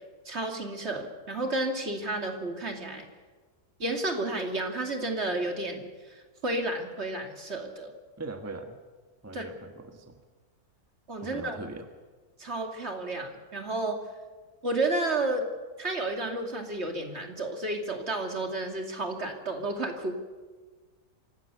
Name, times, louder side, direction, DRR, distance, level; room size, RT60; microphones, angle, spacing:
voice 1, 0.2-3.1 3.8-7.9 9.3-9.4 11.1-11.6 12.4-14.0 14.6-15.5 15.8-20.1, right 2 dB, 45° right, 3 dB, 2.8 m, -31 dB
voice 2, 8.2-8.8 9.2-10.2 11.2-11.9, right 2 dB, 10° right, 5 dB, 1.4 m, -40 dB
25.0 x 18.0 x 6.9 m, 1.4 s
omnidirectional pair, 1.6 m